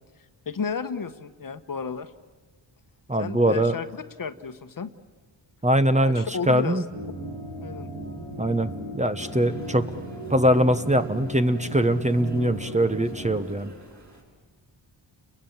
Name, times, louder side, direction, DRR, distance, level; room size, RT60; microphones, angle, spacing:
voice 1, 0.5-2.1 3.2-4.9 6.0-6.8 7.6-7.9, left 5 dB, 45° left, 10 dB, 1.2 m, -32 dB
voice 2, 3.1-3.7 5.6-6.8 8.4-9.9 10.3-13.7, right 1 dB, 15° right, 10 dB, 1.0 m, -22 dB
sound 1, 6.9-13.4, right 2 dB, 80° right, 7.3 m, -36 dB
sound 2, 9.2-14.2, right 1 dB, 35° right, 7.9 m, -50 dB
30.0 x 22.0 x 7.3 m, 1.4 s
cardioid pair, 80°, 46 cm